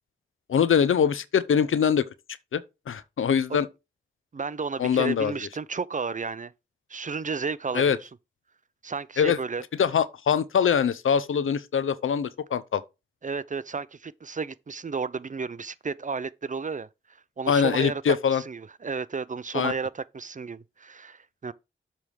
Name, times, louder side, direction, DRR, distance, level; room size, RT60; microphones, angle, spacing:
voice 1, 0.5-2.0 2.5-2.6 2.9-3.7 4.8-5.3 7.7-8.0 9.2-9.4 9.8-12.8 17.5-18.4 19.5-19.7, left 7 dB, 85° left, 0.6 m, -23 dB
voice 2, 4.3-6.5 6.9-8.1 8.8-9.6 13.2-16.9 17.4-21.5, right 5 dB, 40° right, 0.5 m, -32 dB
7.4 x 3.5 x 6.4 m
cardioid pair, 45°, 20 cm